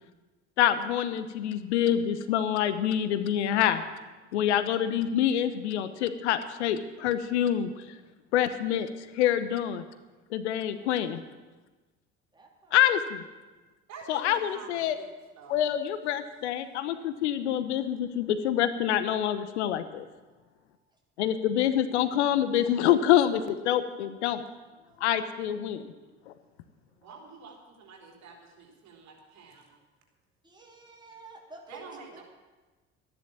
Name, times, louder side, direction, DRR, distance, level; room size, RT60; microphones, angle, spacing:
voice 1, 0.6-3.8 4.3-7.7 8.3-8.9 9.1-9.8 10.3-11.2 12.7-13.2 14.1-15.0 15.5-20.1 21.2-24.4 25.0-25.9 26.3-26.4, left 10 dB, 75° left, 11 dB, 0.9 m, -26 dB
voice 2, 12.3-12.8 24.7-25.1 26.9-27.3 30.4-32.2, right 2 dB, 10° right, -1 dB, 3.6 m, -51 dB
voice 3, 13.9-15.1 15.4-15.7 27.0-29.8 31.7-32.2, right 5 dB, 50° right, 0 dB, 3.7 m, -48 dB
13.5 x 10.5 x 7.2 m, 1.2 s
figure-of-eight pair, 60°, 35 cm